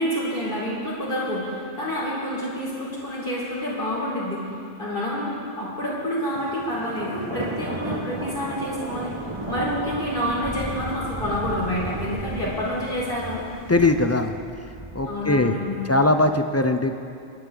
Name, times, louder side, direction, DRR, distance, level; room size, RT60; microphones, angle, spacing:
voice 1, 0.0-4.4 4.8-9.1 9.5-13.4 15.1-15.8, equal, 55° left, -7 dB, 4.7 m, -28 dB
Thunder, 6.3-16.1, right 2 dB, 25° right, 1.4 m, -34 dB
voice 2, 13.7-14.3 14.9-15.5 15.9-16.9, left 2 dB, 25° left, 7 dB, 0.4 m, -20 dB
24.0 x 11.0 x 4.0 m, 2.4 s
omnidirectional pair, 1.1 m